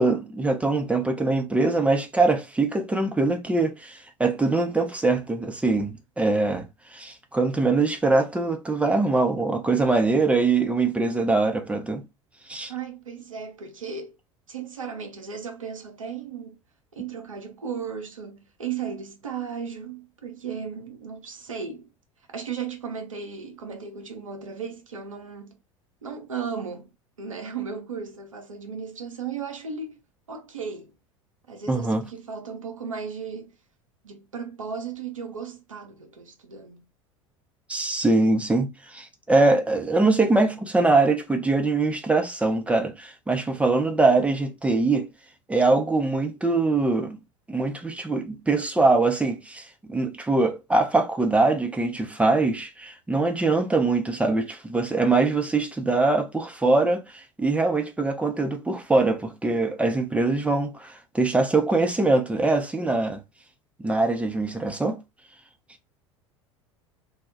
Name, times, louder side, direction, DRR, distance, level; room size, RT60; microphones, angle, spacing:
voice 1, 0.0-6.7 6.9-12.0 12.5-12.7 31.7-32.0 37.7-45.1 45.5-47.2 47.5-63.2 63.8-65.0, right 3 dB, 10° right, 0.5 m, -23 dB
voice 2, 12.7-14.2 14.5-16.6 16.9-21.9 22.3-25.6 26.0-26.9 27.2-30.0 30.3-30.9 31.5-33.5 34.0-36.8, right 6 dB, 85° right, 0.6 m, -35 dB
2.2 x 2.1 x 3.8 m
figure-of-eight pair, 75°, 16 cm